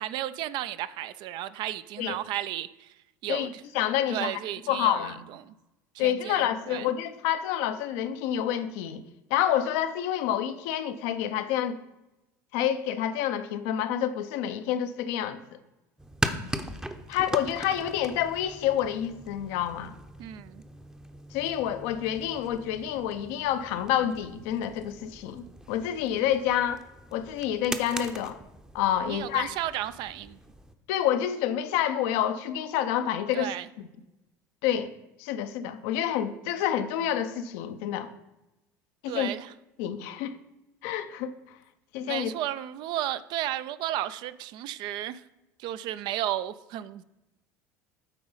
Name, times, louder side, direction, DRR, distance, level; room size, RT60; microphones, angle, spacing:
voice 1, 0.0-2.9 3.2-3.6 4.1-5.1 5.4-5.5 5.9-6.9 20.2-20.6 29.1-30.4 33.3-33.7 39.1-39.5 42.1-45.2 45.6-47.0, right 13 dB, 60° right, 0.4 m, -33 dB
voice 2, 3.3-4.4 4.7-5.2 6.0-9.0 9.3-11.8 12.5-15.4 17.1-19.9 21.3-26.8 27.1-28.4 28.7-29.5 30.9-33.9 34.6-34.9 35.2-38.1 39.0-39.3 39.8-40.4 40.8-41.6 41.9-42.3, left 10 dB, 70° left, 0.6 m, -28 dB
sound 1, 16.0-30.7, right 1 dB, 5° right, 0.7 m, -40 dB
9.0 x 3.9 x 5.5 m
hypercardioid pair, 80°, 9 cm